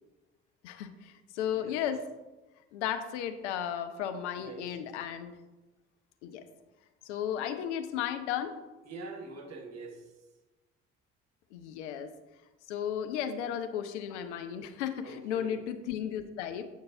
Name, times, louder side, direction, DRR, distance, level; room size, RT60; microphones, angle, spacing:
voice 1, 0.6-2.0 2.7-5.4 6.2-6.4 7.0-8.5 11.5-12.1 12.7-16.6, left 9 dB, 70° left, 9 dB, 0.6 m, -34 dB
voice 2, 4.3-4.7 8.8-10.1 15.0-15.6, right 3 dB, 45° right, 3 dB, 1.3 m, -44 dB
8.0 x 5.2 x 2.6 m, 1.1 s
figure-of-eight pair, 45°, 36 cm